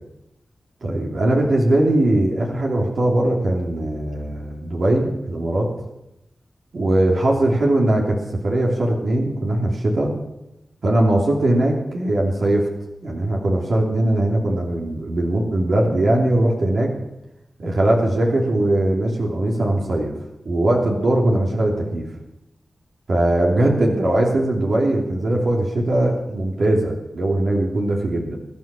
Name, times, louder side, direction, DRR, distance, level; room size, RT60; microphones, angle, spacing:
voice 1, 0.8-5.7 6.7-8.2 8.4-10.1 10.8-12.7 13.0-16.9 17.6-20.1 20.4-22.0 23.1-28.4, right 1 dB, 75° right, -1 dB, 3.0 m, -20 dB
21.0 x 9.6 x 7.0 m, 0.92 s
cardioid pair, 40°, 0 cm